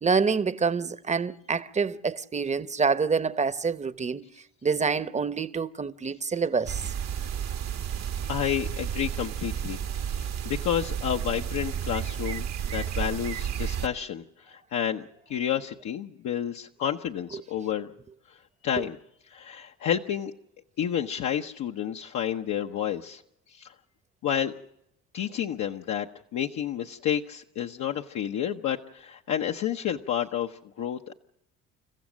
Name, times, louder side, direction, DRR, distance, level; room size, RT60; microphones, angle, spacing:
voice 1, 0.0-4.2 4.6-6.8 18.8-18.9, right 5 dB, 20° right, 0.9 m, -27 dB
sound 1, 6.7-13.9, right 9 dB, 55° right, 1.1 m, -32 dB
voice 2, 8.3-9.8 10.1-17.9 18.3-19.0 19.3-20.3 20.8-23.2 23.5-23.7 24.2-24.5 25.1-31.1, left 9 dB, 60° left, 0.9 m, -30 dB
30.0 x 15.0 x 6.3 m
supercardioid pair, 75°, 32 cm